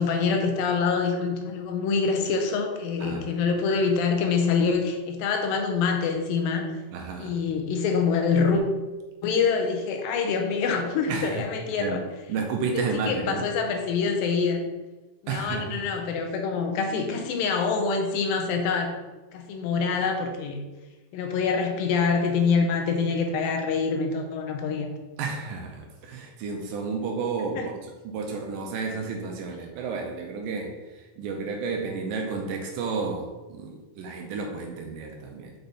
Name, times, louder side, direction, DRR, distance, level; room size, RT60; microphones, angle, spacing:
voice 1, 0.0-6.7 7.2-8.6 9.2-12.0 12.7-14.7 15.2-19.0 19.3-20.6 21.1-24.9 27.4-27.7, left 5 dB, 80° left, 4 dB, 2.3 m, -25 dB
voice 2, 6.9-7.4 11.1-11.4 11.8-12.0 12.3-13.4 15.3-15.7 25.2-27.7 28.1-30.7 31.2-35.5, right 4 dB, 75° right, 2 dB, 2.2 m, -31 dB
6.6 x 4.5 x 4.0 m, 1.2 s
omnidirectional pair, 4.3 m